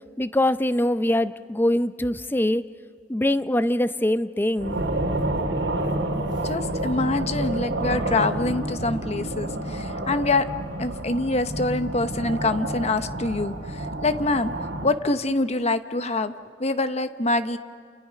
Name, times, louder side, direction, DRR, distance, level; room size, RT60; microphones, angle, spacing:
voice 1, 0.2-2.6 3.1-4.8, left 1 dB, 10° left, 13 dB, 0.6 m, -23 dB
sound 1, 4.6-14.9, right 1 dB, 90° right, 2.6 m, -29 dB
voice 2, 6.4-10.5 10.8-14.5 14.8-16.3 16.6-17.6, left 2 dB, 35° left, 10 dB, 0.9 m, -25 dB
30.0 x 29.0 x 5.8 m, 2.1 s
head